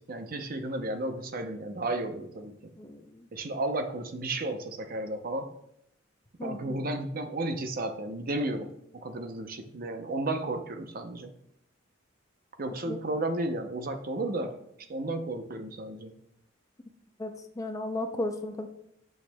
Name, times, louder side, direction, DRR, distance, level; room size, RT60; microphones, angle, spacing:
voice 1, 0.0-2.5 3.3-5.5 6.4-11.3 12.6-14.6 14.9-16.1, right 2 dB, 45° right, 6 dB, 0.7 m, -33 dB
voice 2, 2.8-3.3 6.4-6.8 12.9-13.0 17.2-17.3 17.6-18.7, left 1 dB, 15° left, 6 dB, 0.5 m, -34 dB
8.6 x 6.4 x 2.2 m, 0.75 s
head